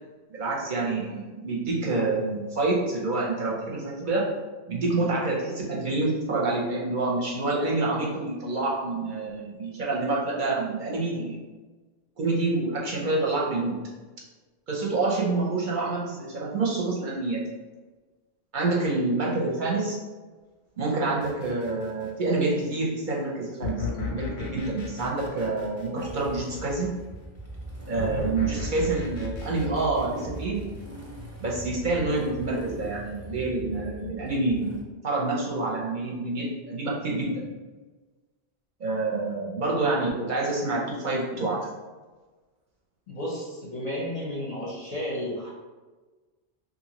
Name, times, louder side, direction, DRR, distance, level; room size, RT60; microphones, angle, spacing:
voice 1, 0.3-4.3 4.7-11.4 12.2-13.8 14.7-17.4 18.5-20.0 20.8-26.9 27.9-30.6 31.4-37.4 38.8-41.6, right 3 dB, 55° right, -4 dB, 0.6 m, -27 dB
sound 1, 21.2-22.4 23.6-26.7 28.0-31.2, left 4 dB, 90° left, 0.9 m, -36 dB
Motorcycle / Engine starting, 26.0-34.8, right 1 dB, 25° right, 0.4 m, -41 dB
voice 2, 43.1-45.5, left 1 dB, 45° left, -5 dB, 0.6 m, -32 dB
2.7 x 2.5 x 2.8 m, 1.3 s
omnidirectional pair, 1.1 m